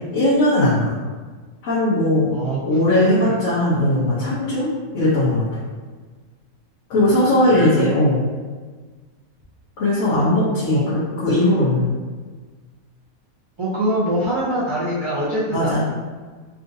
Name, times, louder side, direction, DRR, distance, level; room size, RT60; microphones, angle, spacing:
voice 1, 0.1-0.9 1.6-2.3 2.6-4.7 4.9-5.4 6.9-8.2 9.8-11.9 15.5-15.8, left 1 dB, 65° left, -9 dB, 1.2 m, -18 dB
voice 2, 2.9-3.4 7.1-7.8 10.7-10.9 13.6-15.8, right 1 dB, 35° right, -10 dB, 0.4 m, -24 dB
3.7 x 2.5 x 2.5 m, 1.4 s
omnidirectional pair, 1.5 m